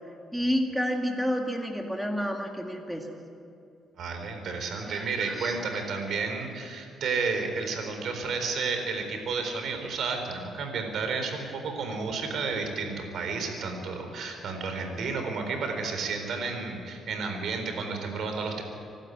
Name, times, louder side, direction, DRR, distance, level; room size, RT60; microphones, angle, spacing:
voice 1, 0.3-3.1 4.8-5.8, equal, ahead, 2 dB, 2.1 m, -30 dB
voice 2, 4.0-18.6, right 4 dB, 65° right, 5 dB, 4.1 m, -31 dB
25.0 x 12.5 x 9.5 m, 2.6 s
cardioid pair, 90°, 0 cm